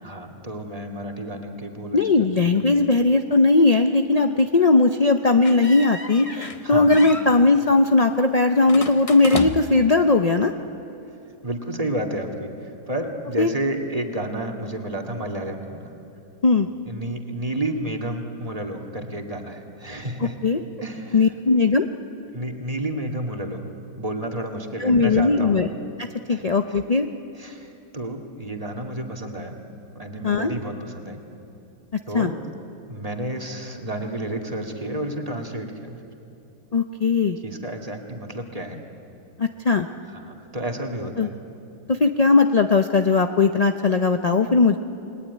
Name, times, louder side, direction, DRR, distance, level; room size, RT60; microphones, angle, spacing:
voice 1, 0.0-2.0 2.5-2.9 6.6-6.9 11.1-11.2 11.4-15.9 16.9-20.4 20.8-21.2 22.3-23.6 24.0-25.6 26.3-26.4 26.7-26.8 27.3-29.6 29.9-31.2 32.1-32.4 32.9-36.0 37.4-38.8 40.1-41.3, right 1 dB, 20° right, 2 dB, 2.2 m, -31 dB
voice 2, 1.9-10.5 13.4-13.5 16.4-16.7 20.4-20.6 21.1-21.9 24.8-25.7 26.0-27.1 30.2-30.5 31.9-32.3 36.7-37.4 39.4-39.9 41.2-41.3 41.9-44.8, left 3 dB, 50° left, 6 dB, 0.4 m, -18 dB
sound 1, 5.4-6.6 6.9-7.3 8.7-9.9, left 3 dB, 25° left, 0.9 m, -30 dB
29.0 x 20.5 x 9.5 m, 2.8 s
omnidirectional pair, 1.8 m